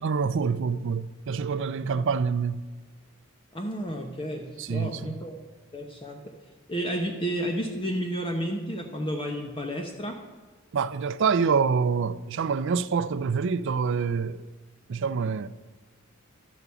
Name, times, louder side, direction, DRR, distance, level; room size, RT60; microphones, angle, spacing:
voice 1, 0.0-2.6 4.6-5.2 10.7-14.5 14.9-15.5, right 5 dB, 60° right, 0.4 m, -26 dB
voice 2, 3.5-5.4 5.7-6.2 6.7-10.2, equal, 25° left, 0.8 m, -31 dB
12.5 x 4.9 x 6.9 m
head